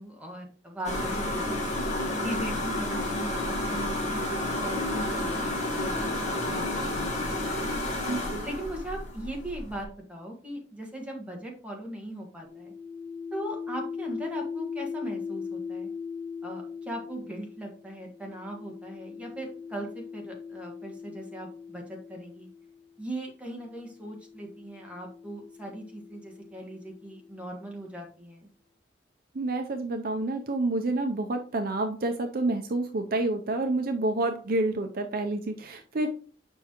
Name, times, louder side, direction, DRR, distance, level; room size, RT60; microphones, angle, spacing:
voice 1, 0.0-1.6 2.2-7.8 8.4-12.7 13.3-15.9 16.4-22.5 23.0-28.5, right 1 dB, 5° right, -1 dB, 1.5 m, -39 dB
sound 1, 0.8-9.8, left 1 dB, 40° left, 1.6 m, -30 dB
voice 2, 8.1-8.5 29.3-36.1, right 2 dB, 50° right, 6 dB, 0.6 m, -28 dB
sound 2, 12.4-22.8 23.7-27.5, left 5 dB, 80° left, 1.7 m, -40 dB
7.2 x 5.4 x 3.0 m, 0.41 s
head